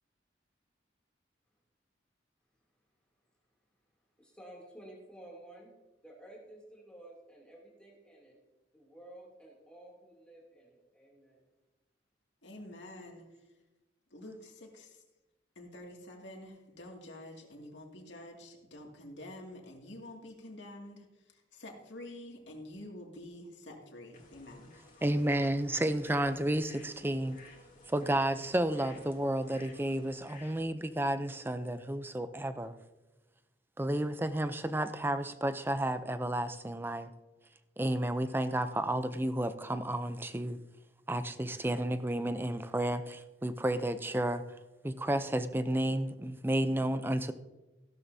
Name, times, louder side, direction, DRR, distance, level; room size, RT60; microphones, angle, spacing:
voice 1, 4.2-5.7 6.0-8.4 8.7-11.4, right 1 dB, 5° left, -3 dB, 2.8 m, -53 dB
voice 2, 12.4-13.2 14.1-14.9 15.6-21.0 21.5-24.7, left 1 dB, 75° left, 1 dB, 2.4 m, -48 dB
sound 1, 24.1-30.6, left 3 dB, 45° left, 2.7 m, -56 dB
voice 3, 25.0-27.4 27.9-32.8 33.8-37.1 37.8-40.6 41.1-44.4 44.8-47.3, right 1 dB, 10° right, 11 dB, 0.5 m, -32 dB
15.5 x 12.0 x 2.8 m, 1.1 s
head